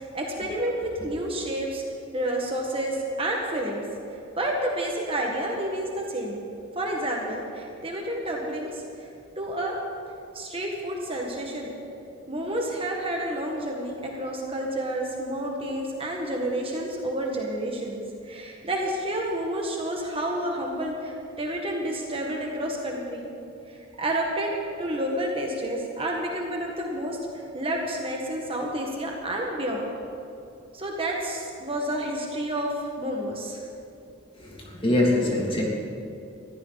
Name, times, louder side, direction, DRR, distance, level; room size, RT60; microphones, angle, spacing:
voice 1, 0.0-1.8 2.1-3.8 4.1-6.4 6.8-9.1 9.4-9.8 10.3-11.7 12.3-23.3 23.7-24.5 24.8-29.8 30.7-33.6, right 1 dB, 25° right, -1 dB, 1.8 m, -30 dB
voice 2, 34.4-35.6, left 1 dB, 25° left, -3 dB, 2.9 m, -24 dB
21.0 x 14.0 x 4.2 m, 2.6 s
head